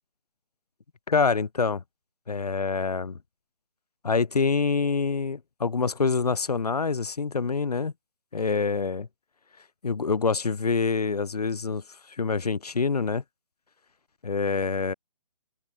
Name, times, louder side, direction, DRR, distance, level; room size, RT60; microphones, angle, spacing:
voice 1, 1.1-1.8 2.3-3.2 4.0-7.9 8.3-9.1 9.8-11.8 12.2-13.2 14.2-14.9, left 4 dB, 85° left, 0.8 m, -26 dB
open air
figure-of-eight pair, 145°, 19 cm